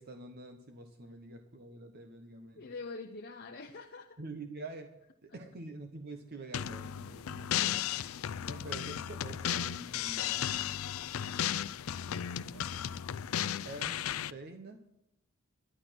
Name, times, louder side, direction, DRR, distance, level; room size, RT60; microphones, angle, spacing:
voice 1, 0.0-2.6 4.2-7.8 8.5-10.5 12.5-12.7 13.6-14.9, right 2 dB, 45° right, 0.9 m, -46 dB
voice 2, 2.6-4.2 7.5-7.8 8.4-8.9 11.0-11.7 12.1-12.8, left 3 dB, 50° left, 0.7 m, -47 dB
sound 1, 6.5-14.3, left 10 dB, 75° left, 0.4 m, -35 dB
11.5 x 11.5 x 6.0 m
head